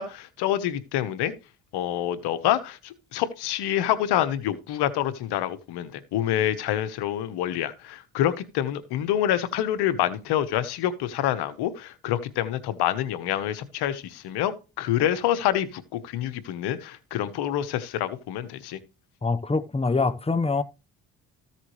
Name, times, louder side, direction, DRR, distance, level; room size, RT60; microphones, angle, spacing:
voice 1, 0.0-1.3 1.7-18.8, left 11 dB, 85° left, 1.2 m, -27 dB
voice 2, 19.2-20.6, left 3 dB, 15° left, 1.0 m, -24 dB
14.5 x 7.3 x 3.2 m
supercardioid pair, 65°, 38 cm